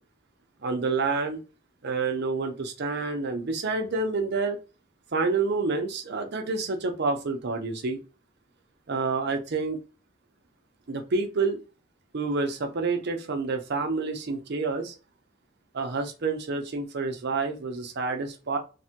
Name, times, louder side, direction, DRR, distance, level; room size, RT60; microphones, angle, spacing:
voice 1, 0.6-1.4 1.8-4.6 5.1-8.0 8.9-9.8 10.9-11.6 12.1-15.0 15.7-18.6, right 4 dB, 55° right, 0.6 m, -28 dB
3.4 x 2.1 x 2.8 m
head